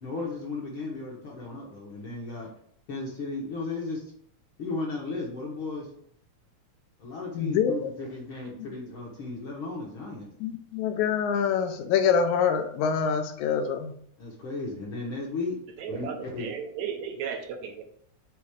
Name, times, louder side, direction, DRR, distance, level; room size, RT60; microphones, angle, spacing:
voice 1, 0.0-2.5 2.9-4.0 4.6-5.9 7.0-10.3 14.2-15.6 15.9-16.5, left 3 dB, 55° left, -2 dB, 1.5 m, -35 dB
voice 2, 7.4-7.8 10.4-13.9, left 7 dB, 80° left, 7 dB, 2.0 m, -25 dB
voice 3, 15.8-17.8, right 7 dB, 75° right, 5 dB, 2.1 m, -35 dB
5.8 x 4.1 x 4.9 m, 0.63 s
omnidirectional pair, 3.5 m